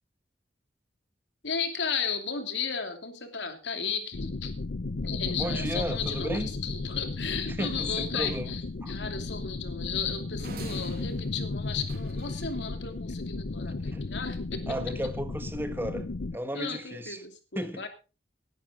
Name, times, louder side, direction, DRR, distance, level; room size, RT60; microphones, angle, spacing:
voice 1, 1.4-4.5 5.0-14.6 16.5-17.9, left 6 dB, 90° left, 2.8 m, -34 dB
sound 1, 4.1-16.4, left 3 dB, 65° left, 0.6 m, -34 dB
voice 2, 5.3-6.5 7.5-8.5 8.8-8.9 13.7-14.0 14.7-16.1 16.3-17.2 17.5-17.8, right 1 dB, 15° right, 1.4 m, -34 dB
sound 2, 10.4-12.6, right 2 dB, 60° right, 2.2 m, -45 dB
18.5 x 11.0 x 3.8 m
head